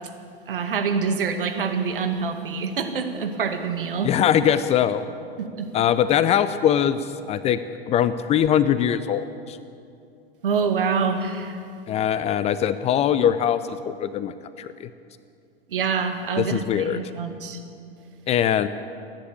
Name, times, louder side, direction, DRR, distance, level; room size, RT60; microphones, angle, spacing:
voice 1, 0.5-4.1 5.4-5.7 10.4-11.6 15.7-17.6, right 5 dB, 65° right, 6 dB, 2.1 m, -26 dB
voice 2, 4.0-5.0 5.7-7.0 7.3-7.6 7.9-9.6 11.9-14.9 16.4-17.0 18.3-18.7, left 9 dB, 20° left, 13 dB, 0.6 m, -22 dB
29.5 x 10.5 x 8.8 m, 2.5 s
figure-of-eight pair, 95°, 30 cm